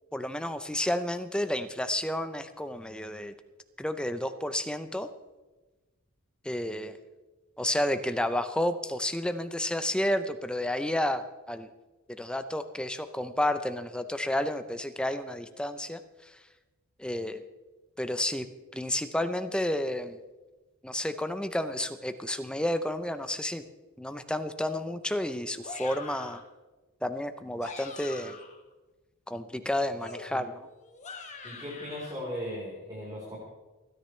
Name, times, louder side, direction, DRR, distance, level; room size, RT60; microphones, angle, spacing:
voice 1, 0.1-3.3 3.8-5.1 6.4-6.9 7.6-11.7 12.1-16.0 17.0-17.4 18.0-18.5 18.7-20.2 20.8-23.6 24.0-26.4 27.0-28.4 29.3-30.7, left 1 dB, 5° left, 9 dB, 0.6 m, -31 dB
sound 1, 25.6-26.5 27.4-28.6 30.0-32.1, left 4 dB, 35° left, 1.4 m, -44 dB
voice 2, 31.4-33.4, equal, 20° right, -6 dB, 4.1 m, -37 dB
29.0 x 10.0 x 3.3 m, 1.2 s
head